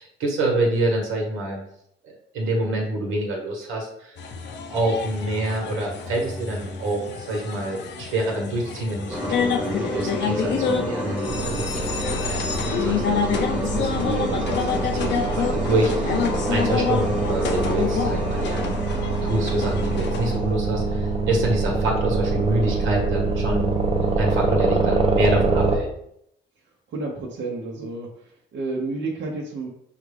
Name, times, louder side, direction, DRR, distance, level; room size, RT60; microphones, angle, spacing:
voice 1, 0.0-1.6 2.0-4.2 4.7-11.8 12.2-18.8 19.2-23.7 24.2-25.9, right 1 dB, 85° right, -1 dB, 1.3 m, -27 dB
sound 1, 4.2-20.4, left 6 dB, 60° left, 0.6 m, -28 dB
sound 2, 9.1-20.6, equal, 5° right, 1.0 m, -31 dB
sound 3, 11.3-25.8, right 3 dB, 30° right, 0.8 m, -25 dB
voice 2, 26.9-29.7, right 3 dB, 65° right, -3 dB, 0.9 m, -31 dB
5.7 x 2.4 x 3.4 m, 0.73 s
cardioid pair, 90°, 20 cm